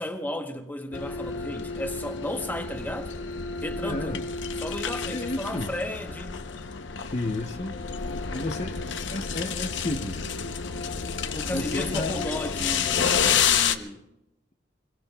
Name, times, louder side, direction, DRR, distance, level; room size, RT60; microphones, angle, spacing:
voice 1, 0.0-3.1 3.6-4.2 4.6-6.5 11.3-14.0, left 1 dB, 10° left, 0.9 m, -34 dB
sound 1, 0.9-13.8, left 6 dB, 75° left, 0.7 m, -29 dB
voice 2, 3.8-4.3 5.1-5.7 7.0-7.8 8.3-10.3 11.5-12.2, left 2 dB, 40° left, 0.7 m, -32 dB
26.5 x 22.0 x 2.3 m
head